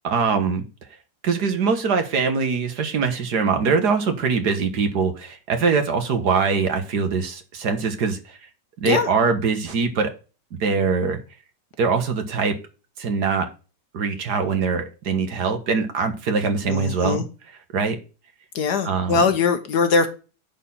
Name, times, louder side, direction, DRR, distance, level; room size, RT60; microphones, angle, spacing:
voice 1, 0.0-0.6 1.2-8.4 8.8-10.1 10.6-11.2 11.8-12.6 13.0-13.5 13.9-17.2 17.7-18.0 18.8-19.2, right 5 dB, 65° right, 1.9 m, -22 dB
voice 2, 16.7-17.2 18.5-20.1, left 4 dB, 70° left, 1.7 m, -21 dB
10.0 x 4.4 x 5.6 m
omnidirectional pair, 1.9 m